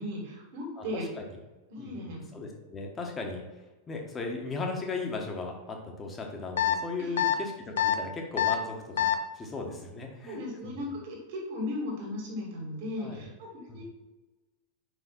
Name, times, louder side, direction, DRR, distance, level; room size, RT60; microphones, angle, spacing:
voice 1, 0.0-1.1 1.7-2.2 7.0-7.2 10.3-13.8, left 1 dB, 50° right, -1 dB, 2.6 m, -36 dB
voice 2, 0.8-1.4 1.8-3.4 3.9-10.8 13.0-13.2 13.7-13.8, left 3 dB, 20° left, 2 dB, 1.5 m, -37 dB
sound 1, 6.6-6.8 7.2-7.3 7.8-8.0 8.4-8.5 9.0-9.1, left 11 dB, 60° left, 0.5 m, -24 dB
5.7 x 5.2 x 6.1 m, 1.1 s
figure-of-eight pair, 90°, 0 cm